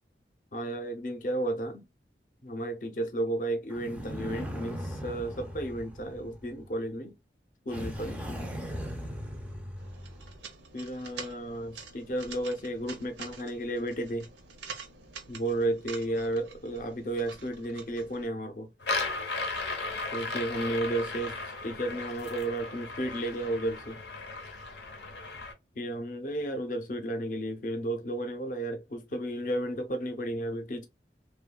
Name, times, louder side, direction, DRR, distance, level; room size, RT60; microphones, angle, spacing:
voice 1, 0.5-1.8 2.4-7.1 7.7-8.2 10.7-14.3 15.3-18.7 20.1-24.0 25.8-30.9, right 1 dB, 45° left, 0.6 m, -33 dB
sound 1, 3.7-6.8 7.7-10.4, equal, 10° right, 0.4 m, -39 dB
sound 2, 9.8-18.3, right 5 dB, 90° right, 0.6 m, -47 dB
sound 3, 18.8-25.5, left 3 dB, 85° left, 0.7 m, -36 dB
2.9 x 2.2 x 2.2 m
head